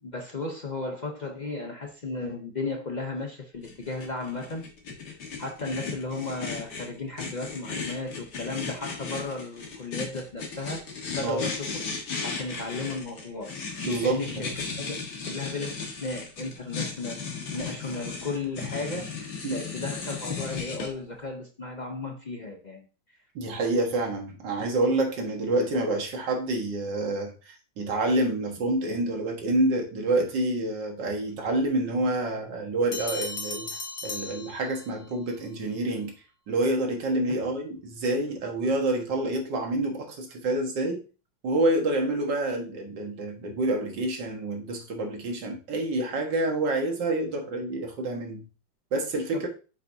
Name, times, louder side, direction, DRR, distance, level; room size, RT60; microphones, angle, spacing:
voice 1, 0.0-4.6 5.1-10.8 11.1-11.8 12.2-13.5 14.0-15.0 15.3-23.2, left 3 dB, 85° left, 2 dB, 0.4 m, -35 dB
sound 1, 3.6-20.9, left 5 dB, 60° left, 2.0 m, -36 dB
voice 2, 13.8-14.4 19.4-19.6 23.4-33.7 34.0-36.1 36.5-41.0 41.4-48.4 48.9-49.5, right 2 dB, 70° right, 2 dB, 2.1 m, -27 dB
Bell, 32.9-35.2, left 3 dB, 45° left, 1.0 m, -36 dB
8.5 x 5.2 x 2.7 m, 0.35 s
omnidirectional pair, 2.0 m